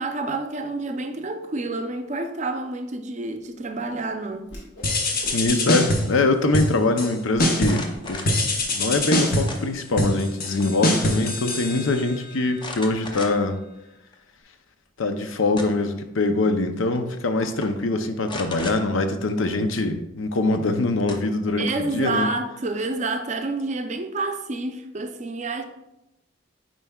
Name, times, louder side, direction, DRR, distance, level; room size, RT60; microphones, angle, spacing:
voice 1, 0.0-4.5 21.6-25.6, right 2 dB, 35° right, 0.5 m, -28 dB
Whoosh swoosh swish, 4.4-4.9 5.2-5.7 6.1-6.6 7.0-7.1 7.3-7.5 7.9-10.1, equal, 65° left, 1.7 m, -43 dB
sound 1, 4.8-6.2 6.5-7.1 7.4-7.9 8.3-12.3, left 1 dB, 45° left, 0.9 m, -24 dB
voice 2, 5.3-8.2 8.7-13.6 15.0-22.3, left 2 dB, 80° left, 0.6 m, -23 dB
sound 2, 7.7-8.4 9.5-10.1 10.5-11.0 11.3-11.4 12.6-13.6 14.1-14.2 15.2-16.0 17.0-17.1 17.4-17.7 18.2-18.8 20.5-20.6 21.1-21.9, left 2 dB, 25° left, 0.6 m, -36 dB
9.0 x 4.5 x 2.3 m
head